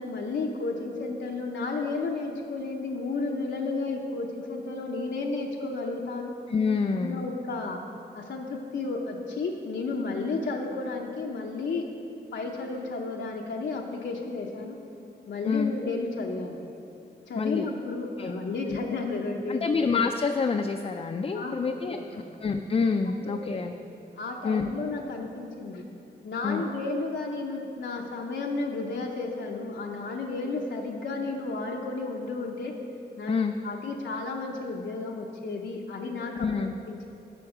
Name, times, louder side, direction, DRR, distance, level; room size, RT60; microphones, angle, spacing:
voice 1, 0.0-6.3 7.0-7.8 8.1-11.9 12.3-14.8 15.3-16.6 17.3-19.7 21.3-22.3 23.3-25.8 26.2-32.7 33.2-33.4 33.6-37.1, left 3 dB, 85° left, 0 dB, 0.7 m, -33 dB
voice 2, 6.5-7.3 15.4-15.7 17.4-17.7 18.2-18.3 18.6-18.8 19.5-22.0 22.4-23.7 24.4-24.8 26.4-26.6 33.3-33.5 36.3-36.7, left 5 dB, 35° left, 5 dB, 0.3 m, -27 dB
11.5 x 5.3 x 4.8 m, 2.7 s
wide cardioid pair, 105°, 18 cm